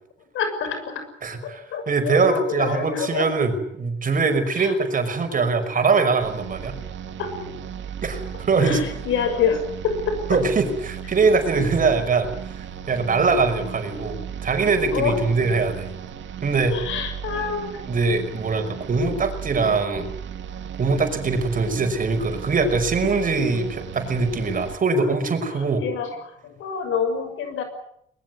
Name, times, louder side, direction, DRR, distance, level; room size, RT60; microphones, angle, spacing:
voice 1, 0.3-1.0 1.4-3.3 4.5-4.7 7.2-7.3 8.6-10.4 14.9-15.2 16.7-17.8 25.6-26.2 26.4-27.6, left 6 dB, 80° left, 8 dB, 6.5 m, -27 dB
voice 2, 1.2-6.7 8.0-8.8 10.3-12.3 12.9-15.9 16.4-16.7 17.9-20.1 20.8-25.8, right 4 dB, 45° right, 7 dB, 5.6 m, -22 dB
sound 1, 6.2-24.8, right 8 dB, 70° right, 2.3 m, -36 dB
22.0 x 21.0 x 9.6 m, 0.72 s
cardioid pair, 90°, 20 cm